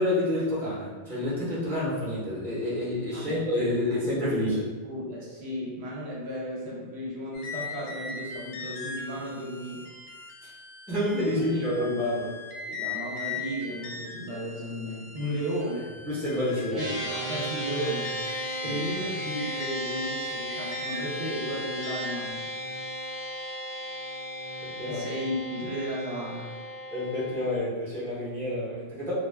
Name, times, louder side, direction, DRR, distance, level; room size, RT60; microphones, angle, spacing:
voice 1, 0.0-4.6 10.9-12.3 16.0-17.0 18.6-18.8 24.8-25.1 26.9-29.1, left 1 dB, ahead, -8 dB, 0.7 m, -28 dB
voice 2, 3.1-3.7 4.1-4.4 4.8-9.9 11.5-11.7 12.6-15.9 16.7-18.3 18.6-22.4 24.9-26.5, equal, 65° right, -5 dB, 0.8 m, -34 dB
sound 1, 7.3-22.3, left 3 dB, 80° left, 0.9 m, -40 dB
sound 2, 16.8-27.6, equal, 35° right, 0.8 m, -35 dB
2.3 x 2.1 x 3.3 m, 1.4 s
omnidirectional pair, 1.2 m